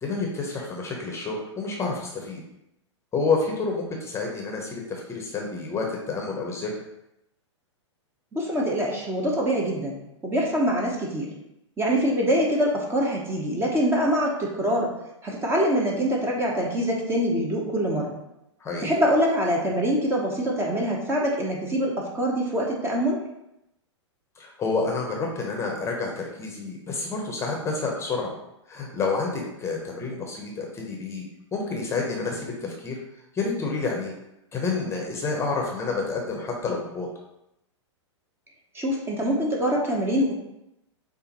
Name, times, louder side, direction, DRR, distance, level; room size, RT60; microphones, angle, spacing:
voice 1, 0.0-2.4 3.1-6.7 18.6-19.0 24.4-28.3 28.7-31.2 31.5-33.0 33.3-34.1 34.5-37.1, left 4 dB, 15° left, 0 dB, 0.8 m, -29 dB
voice 2, 8.3-10.0 10.2-11.3 11.8-14.9 15.2-18.2 18.8-23.2 38.7-40.3, equal, 15° right, -1 dB, 0.9 m, -24 dB
6.6 x 2.6 x 2.9 m, 0.85 s
hypercardioid pair, 110°, 15 cm